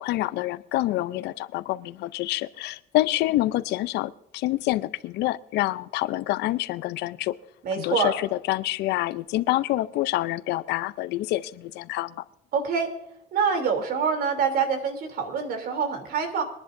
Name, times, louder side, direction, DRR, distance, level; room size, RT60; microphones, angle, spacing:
voice 1, 0.0-7.4 7.8-12.2, left 16 dB, 80° left, 16 dB, 0.6 m, -27 dB
voice 2, 7.6-8.1 12.5-12.9 13.3-16.4, right 6 dB, 65° right, 5 dB, 3.1 m, -25 dB
23.0 x 10.5 x 2.6 m, 0.88 s
cardioid pair, 110°, 17 cm